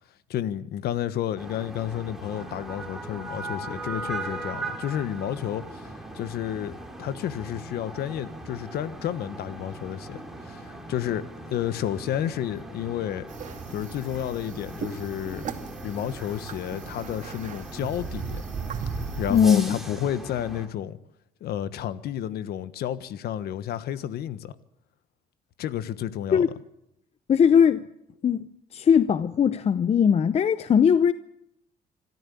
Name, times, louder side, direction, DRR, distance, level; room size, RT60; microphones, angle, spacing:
voice 1, 0.3-13.2 13.7-15.4 15.8-18.4 19.2-21.0 21.4-24.5 25.6-26.5, left 11 dB, 70° left, 1.3 m, -31 dB
sound 1, 1.4-20.7, right 2 dB, ahead, 3.9 m, -39 dB
sound 2, 13.3-19.4, right 6 dB, 45° right, 2.6 m, -37 dB
voice 2, 19.3-19.8 26.3-26.5 27.3-27.8 28.2-28.4 28.7-31.1, left 7 dB, 40° left, 0.7 m, -19 dB
26.0 x 14.0 x 8.4 m
cardioid pair, 110°, 17 cm